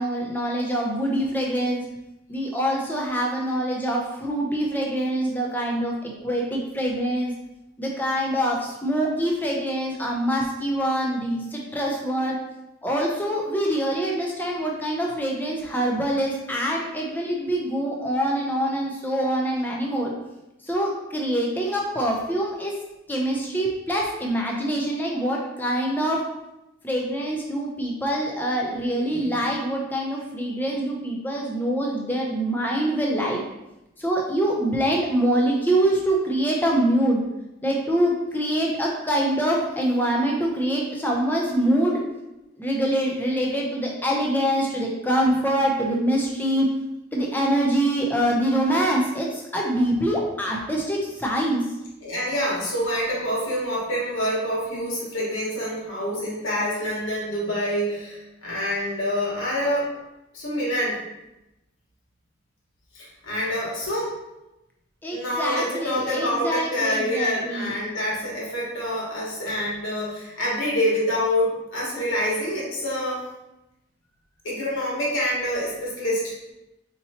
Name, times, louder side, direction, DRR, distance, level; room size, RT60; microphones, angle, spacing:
voice 1, 0.0-1.8 2.3-7.3 7.8-12.4 12.8-20.1 20.6-22.8 23.1-26.2 26.8-33.4 34.0-37.2 37.6-42.0 42.6-46.7 47.1-51.7 65.0-67.7, right 1 dB, 10° left, -2 dB, 0.5 m, -24 dB
voice 2, 52.0-59.9 60.3-61.0 62.9-64.1 65.1-73.2 74.4-76.3, equal, 80° left, -5 dB, 1.4 m, -26 dB
4.3 x 2.8 x 2.8 m, 0.95 s
head